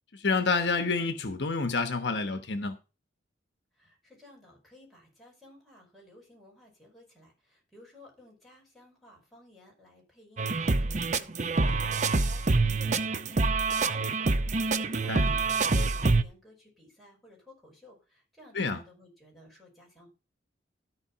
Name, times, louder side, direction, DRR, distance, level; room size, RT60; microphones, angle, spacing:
voice 1, 0.1-2.8 15.1-15.2 18.5-18.8, left 4 dB, 65° left, 1.1 m, -28 dB
voice 2, 3.7-20.1, left 1 dB, ahead, 5.3 m, -56 dB
sound 1, 10.4-16.2, right 3 dB, 40° right, 0.6 m, -26 dB
13.5 x 4.8 x 5.7 m
head